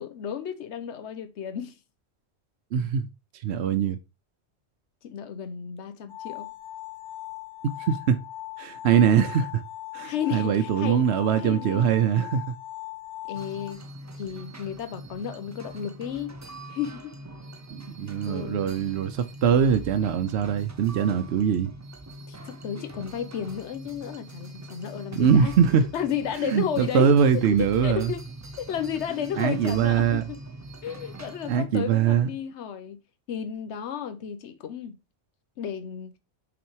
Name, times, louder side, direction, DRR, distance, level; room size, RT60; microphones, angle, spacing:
voice 1, 0.0-1.7 5.0-6.5 10.0-11.0 11.4-11.9 13.2-13.8 14.1-16.3 16.7-17.1 18.3-18.7 22.3-25.5 25.9-27.2 27.5-28.2 28.6-30.4 30.8-33.0 33.3-35.0 35.6-36.1, left 8 dB, 90° left, 1.0 m, -33 dB
voice 2, 2.7-3.1 3.4-4.0 7.8-8.2 8.6-9.6 9.9-12.5 17.7-21.7 25.1-25.8 26.4-28.1 29.4-30.2 31.5-32.3, right 7 dB, 75° right, 0.9 m, -22 dB
sound 1, 6.1-13.7, left 16 dB, 55° left, 1.0 m, -39 dB
sound 2, 13.3-31.6, right 1 dB, 20° right, 0.5 m, -42 dB
6.0 x 4.1 x 4.5 m
omnidirectional pair, 1.1 m